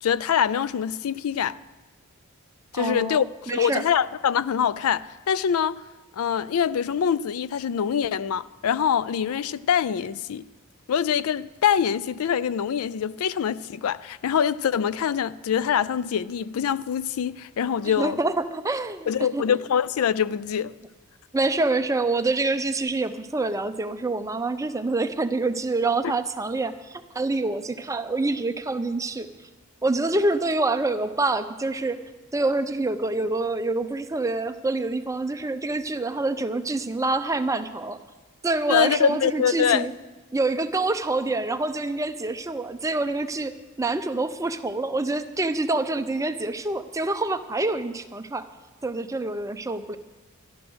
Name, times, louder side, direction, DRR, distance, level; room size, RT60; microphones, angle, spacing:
voice 1, 0.0-1.6 2.7-5.8 6.1-10.5 10.9-18.2 19.1-20.7 26.0-26.1 38.7-39.9, left 8 dB, 85° left, 0.4 m, -24 dB
voice 2, 2.7-3.8 17.8-19.4 21.3-29.3 29.8-32.0 32.3-38.0 38.4-39.9 40.3-48.5 48.8-50.0, right 2 dB, 15° right, 0.6 m, -26 dB
12.5 x 12.0 x 6.2 m
head